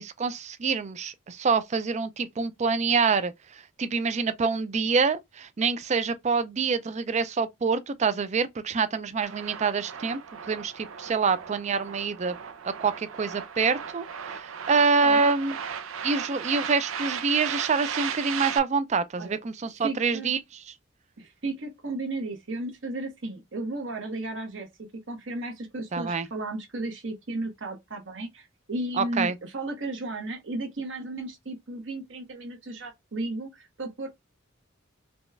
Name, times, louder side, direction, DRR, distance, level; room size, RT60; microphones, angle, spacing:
voice 1, 0.0-10.2 10.5-12.4 12.6-15.6 16.0-20.4 20.7-20.8 25.9-26.3 29.0-29.4, right 5 dB, 35° right, 0.4 m, -26 dB
sound 1, 9.2-18.6, right 7 dB, 85° right, 0.6 m, -36 dB
voice 2, 15.0-15.3 19.2-19.4 19.8-20.3 21.2-34.1, right 2 dB, 65° right, 1.2 m, -34 dB
4.2 x 2.3 x 3.2 m
head